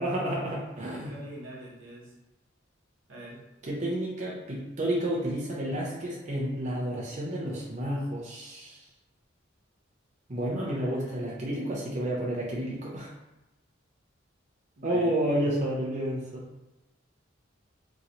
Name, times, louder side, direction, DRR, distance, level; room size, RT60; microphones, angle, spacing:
voice 1, 0.0-1.1 3.6-8.9 10.3-13.1 14.8-16.5, right 1 dB, 35° right, -5 dB, 0.6 m, -30 dB
voice 2, 1.0-2.1 3.1-3.4 10.7-11.4 14.8-15.5, right 1 dB, 80° right, -4 dB, 1.0 m, -44 dB
3.0 x 2.9 x 2.6 m, 1.0 s
head